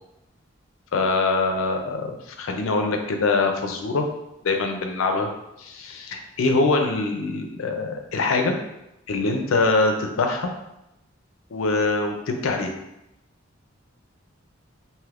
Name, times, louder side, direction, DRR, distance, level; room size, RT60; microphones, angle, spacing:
voice 1, 0.9-4.1 4.4-5.3 5.6-8.5 9.1-10.5 11.5-12.7, left 3 dB, 85° left, 4 dB, 0.4 m, -23 dB
2.7 x 2.4 x 3.3 m, 0.88 s
head